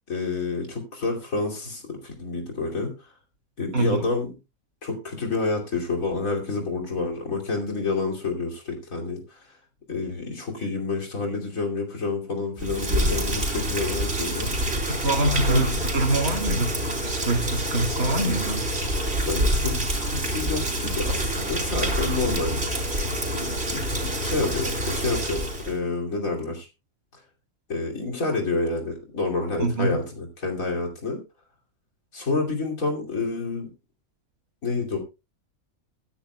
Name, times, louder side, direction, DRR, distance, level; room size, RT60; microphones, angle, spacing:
voice 1, 0.1-2.9 3.6-4.3 4.8-9.4 9.9-14.5 15.5-15.7 19.3-23.0 23.3-26.7 27.7-31.2 32.1-33.7 34.6-35.0, left 3 dB, 70° left, 1 dB, 3.1 m, -29 dB
Rain, 12.6-25.7, right 1 dB, 45° right, 3.3 m, -27 dB
voice 2, 14.9-16.8 17.0-18.6 29.6-30.0, right 2 dB, 80° right, 1 dB, 2.7 m, -24 dB
22.0 x 10.0 x 2.3 m, 0.27 s
omnidirectional pair, 1.5 m